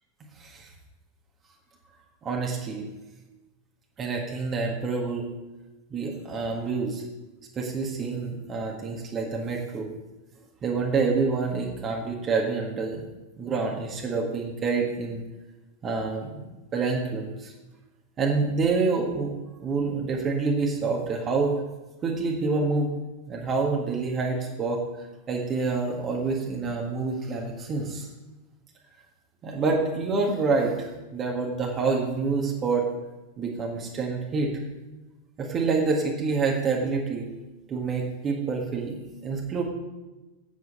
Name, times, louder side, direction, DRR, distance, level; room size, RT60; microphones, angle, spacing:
voice 1, 0.3-0.7 2.2-2.8 4.0-5.3 5.9-7.0 7.5-9.9 10.6-13.0 13.4-15.2 15.8-16.4 16.7-17.5 18.2-19.3 19.6-21.5 22.0-22.9 23.3-28.1 29.4-32.9 33.4-34.5 35.4-37.3 37.7-39.0 39.2-39.6, right 4 dB, 25° right, 0 dB, 1.6 m, -27 dB
8.0 x 7.6 x 5.4 m, 1.1 s
figure-of-eight pair, 90°, 0 cm